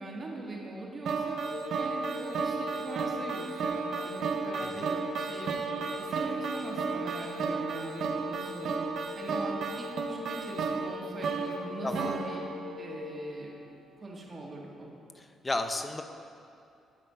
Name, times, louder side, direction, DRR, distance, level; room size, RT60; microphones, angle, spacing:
voice 1, 0.0-1.4 1.8-5.6 5.9-8.9 9.2-12.4 12.8-13.7 14.0-14.9, right 2 dB, 35° right, -2 dB, 1.8 m, -41 dB
sound 1, 1.1-13.2, right 5 dB, 65° right, 0.7 m, -33 dB
sound 2, 1.5-13.3, left 7 dB, 80° left, 0.5 m, -43 dB
voice 2, 11.8-12.2 15.2-16.0, left 2 dB, 25° left, 7 dB, 0.6 m, -34 dB
10.0 x 4.3 x 6.7 m, 2.6 s
cardioid pair, 90°, 0 cm